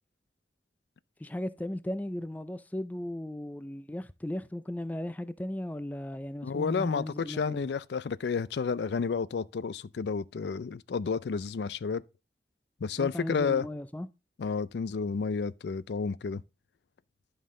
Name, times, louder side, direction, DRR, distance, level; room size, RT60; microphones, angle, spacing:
voice 1, 1.2-7.7 13.0-14.1, left 1 dB, 10° left, 0.4 m, -36 dB
voice 2, 6.4-12.0 12.8-13.7 14.4-16.4, left 5 dB, 75° left, 0.4 m, -31 dB
11.5 x 5.6 x 3.7 m
head